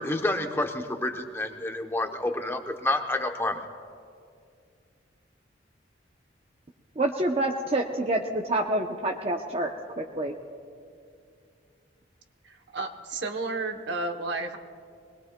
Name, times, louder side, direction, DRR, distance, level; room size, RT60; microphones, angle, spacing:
voice 1, 0.0-3.6, left 1 dB, 15° left, 5 dB, 0.8 m, -29 dB
voice 2, 7.0-9.7 10.0-10.3, right 1 dB, 30° right, 1 dB, 0.7 m, -27 dB
voice 3, 12.4-14.6, right 3 dB, 60° right, 5 dB, 0.9 m, -32 dB
24.5 x 20.5 x 2.2 m, 2.3 s
head